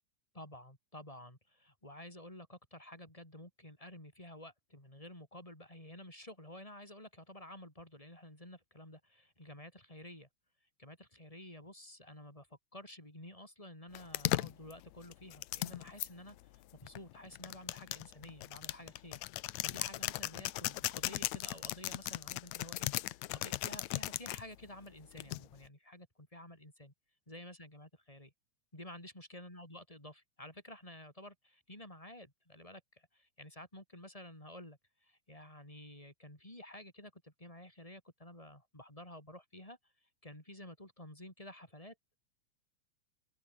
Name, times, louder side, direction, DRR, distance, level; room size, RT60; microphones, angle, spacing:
voice 1, 0.3-10.3 10.8-26.9 27.3-28.3 28.7-41.9, left 1 dB, 10° left, 6.0 m, -52 dB
sound 1, 13.9-16.1 16.9-24.4 25.2-25.7, left 17 dB, 80° left, 1.9 m, -37 dB
omnidirectional pair, 3.4 m